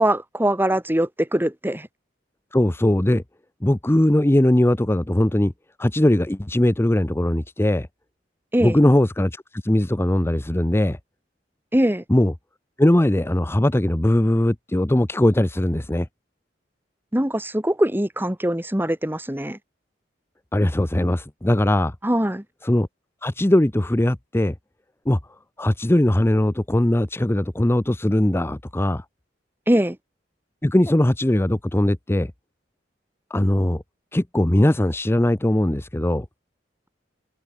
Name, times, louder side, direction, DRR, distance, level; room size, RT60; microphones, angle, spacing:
voice 1, 0.0-1.9 8.5-8.8 11.7-12.0 17.1-19.6 22.0-22.4 29.7-30.0, right 1 dB, 10° right, 2.3 m, -22 dB
voice 2, 2.5-3.2 3.6-5.5 5.8-7.9 8.6-11.0 12.1-12.3 12.8-16.1 20.5-21.9 22.6-22.9 23.2-24.5 25.1-25.2 25.6-29.0 30.6-32.3 33.3-33.8 34.1-36.3, left 1 dB, 15° left, 0.7 m, -20 dB
head